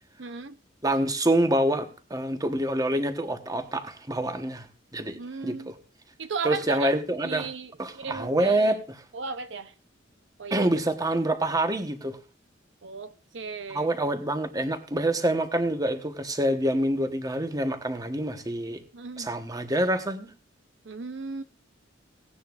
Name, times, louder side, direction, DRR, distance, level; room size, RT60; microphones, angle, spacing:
voice 1, 0.2-0.5 5.0-5.7 6.2-6.9 7.2-8.8 9.1-9.7 10.4-10.7 12.8-13.9 18.9-19.3 20.9-21.4, right 5 dB, 70° right, 0.7 m, -35 dB
voice 2, 0.8-4.7 4.9-5.8 6.4-7.5 7.8-9.0 10.5-12.2 13.7-18.8 19.2-20.3, right 1 dB, 20° right, 1.2 m, -26 dB
17.5 x 10.0 x 2.5 m
head